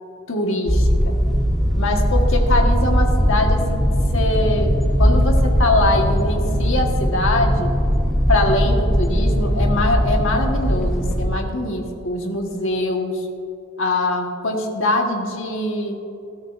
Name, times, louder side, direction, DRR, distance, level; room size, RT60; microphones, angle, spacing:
voice 1, 0.3-1.1 1.8-3.8 4.1-4.7 5.0-7.7 8.3-13.2 13.8-16.0, left 2 dB, 60° left, 2 dB, 1.5 m, -23 dB
sound 1, 0.7-11.2, equal, ahead, 1.4 m, -19 dB
19.0 x 13.0 x 2.6 m, 2.8 s
head